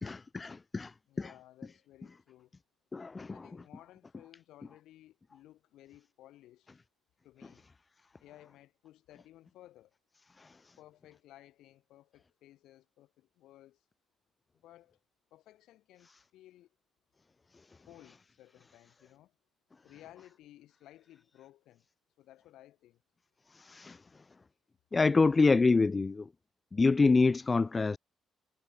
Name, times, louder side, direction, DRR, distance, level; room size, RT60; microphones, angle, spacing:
voice 1, 0.0-1.3 2.9-3.4 10.4-10.5 23.5-24.0 24.9-26.3 26.7-28.0, left 3 dB, 25° left, 0.4 m, -27 dB
voice 2, 1.1-2.5 3.3-6.7 7.2-7.7 8.2-10.0 10.8-13.8 14.5-15.0 15.3-16.7 17.8-19.4 19.8-21.9 22.2-23.0, left 14 dB, 85° left, 3.9 m, -57 dB
cardioid pair, 90°, 0 cm